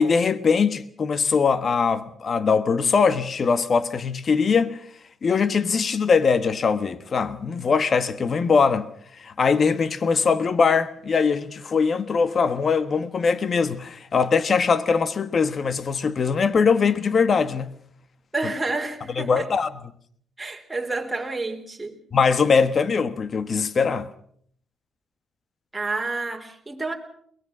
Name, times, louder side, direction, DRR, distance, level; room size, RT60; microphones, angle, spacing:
voice 1, 0.0-4.8 5.2-8.9 9.2-17.7 19.2-19.7 22.1-24.1, left 5 dB, 45° left, 1.3 m, -21 dB
voice 2, 18.3-19.5 20.4-22.0 25.7-26.9, right 3 dB, 15° right, 4.0 m, -29 dB
22.5 x 20.5 x 6.2 m
cardioid pair, 90°, 0 cm